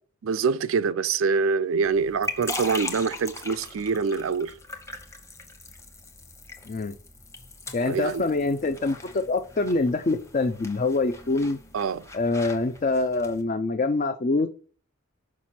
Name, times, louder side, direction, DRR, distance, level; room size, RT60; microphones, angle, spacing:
voice 1, 0.2-4.5 7.9-8.3 11.7-12.1, right 5 dB, 85° right, 0.4 m, -25 dB
sound 1, 1.8-13.4, left 2 dB, 15° left, 0.9 m, -40 dB
voice 2, 7.7-11.6 12.1-14.5, left 3 dB, 40° left, 0.4 m, -25 dB
6.0 x 5.1 x 4.2 m
head